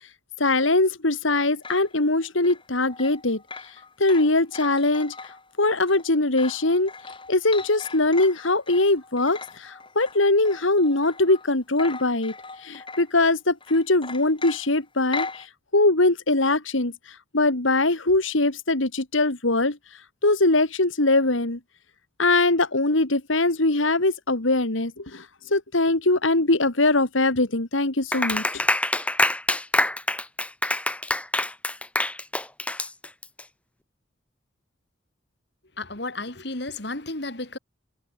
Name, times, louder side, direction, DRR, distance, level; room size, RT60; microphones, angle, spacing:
voice 1, 0.4-3.4 4.0-5.1 5.6-6.9 7.3-12.3 12.6-15.5 15.7-16.9 17.3-19.8 20.2-21.6 22.2-25.3 25.5-28.6, left 2 dB, 85° left, 2.6 m, -22 dB
sound 1, 1.3-11.5 11.8-13.2 13.6-15.5, left 4 dB, 25° left, 7.9 m, -39 dB
Clapping, 28.1-33.4, left 1 dB, 5° left, 3.3 m, -25 dB
voice 2, 35.8-37.6, left 2 dB, 60° left, 3.1 m, -33 dB
head